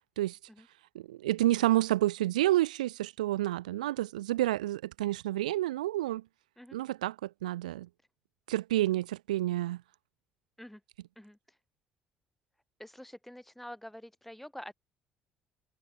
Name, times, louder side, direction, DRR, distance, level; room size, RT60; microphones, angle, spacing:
voice 1, 1.1-6.2 6.7-7.1 7.4-7.9 8.5-9.8, right 15 dB, 80° right, 1.7 m, -29 dB
voice 2, 12.8-14.7, left 1 dB, 5° left, 3.6 m, -47 dB
figure-of-eight pair, 50°, 4 cm